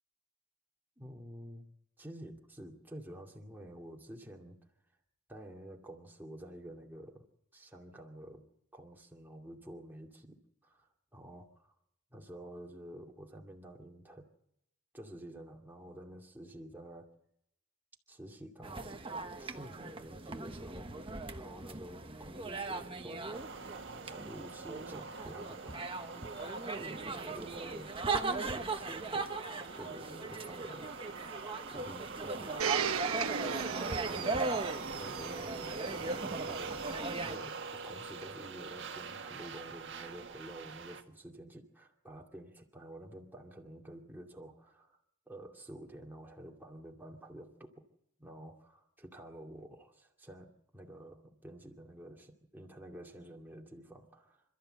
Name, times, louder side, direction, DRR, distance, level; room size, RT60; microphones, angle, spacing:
voice 1, 1.0-4.6 5.3-7.2 7.5-8.4 8.7-11.7 12.1-14.3 14.9-17.2 18.1-20.9 21.3-25.9 26.8-27.9 28.2-29.3 29.7-30.9 31.7-32.9 33.7-34.6 34.9-36.9 37.2-45.0 45.3-47.8 48.2-54.4, right 1 dB, 10° right, 0 dB, 2.4 m, -50 dB
sound 1, 18.6-37.4, right 3 dB, 25° right, 1.2 m, -39 dB
sound 2, 23.3-41.0, right 4 dB, 60° right, 1.7 m, -44 dB
Domestic sounds home sounds, 32.6-37.4 38.2-38.3, right 7 dB, 85° right, 1.1 m, -38 dB
27.5 x 13.5 x 7.8 m, 0.82 s
head